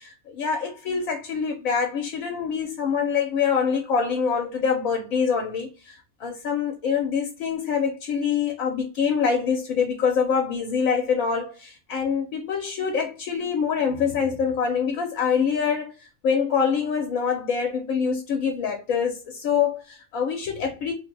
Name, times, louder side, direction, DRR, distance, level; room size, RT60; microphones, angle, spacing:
voice 1, 0.0-20.9, left 6 dB, 85° left, 1.1 m, -25 dB
3.1 x 2.2 x 3.2 m
omnidirectional pair, 1.4 m